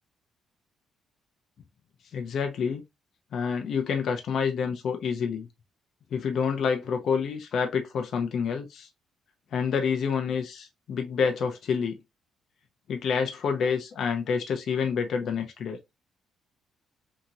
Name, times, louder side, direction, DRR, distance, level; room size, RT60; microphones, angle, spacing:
voice 1, 2.1-2.8 3.3-5.5 6.1-8.9 9.5-12.0 12.9-15.8, left 6 dB, 65° left, 0.5 m, -28 dB
2.8 x 2.8 x 2.4 m
cardioid pair, 90°, 0 cm